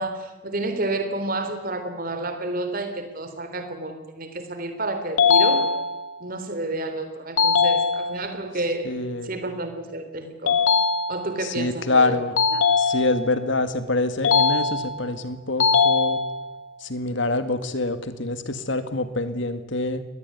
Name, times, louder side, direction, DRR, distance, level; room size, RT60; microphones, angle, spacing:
voice 1, 0.0-5.6 6.2-8.9 9.2-10.6 11.1-12.1 12.5-12.6, right 2 dB, 45° right, 8 dB, 3.4 m, -30 dB
sound 1, 5.2-6.2 7.4-8.4 10.5-11.5 12.4-13.4 14.2-15.1 15.6-16.6, left 5 dB, 80° left, 1.7 m, -21 dB
voice 2, 8.8-9.3 11.4-12.4 12.7-16.2 16.8-20.0, left 2 dB, 65° left, 10 dB, 2.0 m, -25 dB
23.5 x 19.0 x 9.5 m, 1.2 s
head